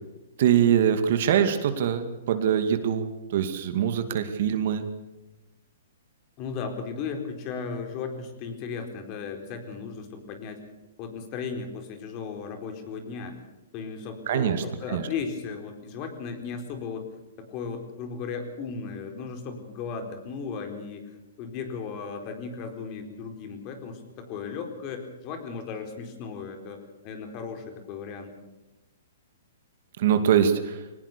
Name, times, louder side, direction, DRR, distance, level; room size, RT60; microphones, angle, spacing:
voice 1, 0.4-4.8 14.3-14.6 14.9-15.0 30.0-30.8, right 9 dB, 55° right, 8 dB, 2.4 m, -23 dB
voice 2, 6.4-10.6 11.0-13.5 13.7-17.1 17.4-28.3, left 5 dB, 35° left, 6 dB, 4.3 m, -36 dB
23.5 x 19.0 x 6.9 m, 1.0 s
hypercardioid pair, 145°, 0 cm